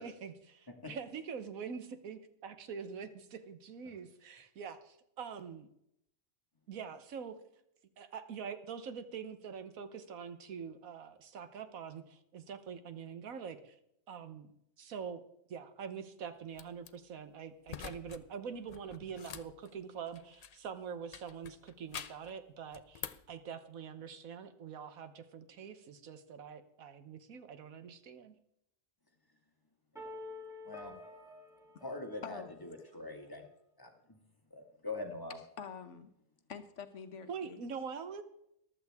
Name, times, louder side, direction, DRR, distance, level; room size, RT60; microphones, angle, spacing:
voice 1, 0.0-5.7 6.7-7.4 8.0-13.8 14.1-14.5 14.8-15.2 15.5-28.3 37.3-38.2, right 6 dB, 80° right, 10 dB, 1.4 m, -44 dB
sound 1, 16.5-16.9 17.7-18.2 18.5-20.7 21.1-22.3 22.7-23.3, left 7 dB, 85° left, 0.3 m, -46 dB
sound 2, 29.9-32.9, left 2 dB, ahead, 2.5 m, -49 dB
voice 2, 31.8-33.4 33.8-34.2 34.5-35.4, left 2 dB, 15° left, 2 dB, 1.6 m, -43 dB
voice 3, 35.6-36.1 36.5-37.6, left 7 dB, 65° left, 9 dB, 1.2 m, -46 dB
14.5 x 11.5 x 3.5 m, 0.77 s
omnidirectional pair, 1.4 m